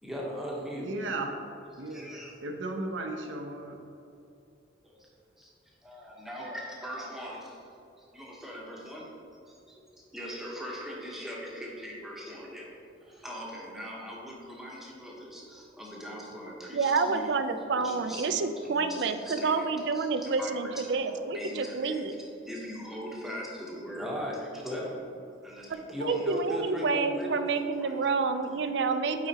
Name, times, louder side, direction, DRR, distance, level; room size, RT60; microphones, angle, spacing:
voice 1, 0.0-0.9 1.7-2.3 4.8-5.1 5.4-5.5 5.8-7.6 8.0-9.1 9.5-12.7 13.0-17.4 17.8-19.7 19.9-22.2 22.4-25.1 25.4-27.4 27.8-28.9, equal, ahead, -4 dB, 0.9 m, -40 dB
voice 2, 0.8-1.4 1.8-3.8, right 2 dB, 80° right, 3 dB, 0.7 m, -35 dB
voice 3, 16.7-22.2 26.0-29.3, right 4 dB, 60° right, 9 dB, 0.4 m, -28 dB
8.4 x 4.8 x 2.8 m, 2.7 s
head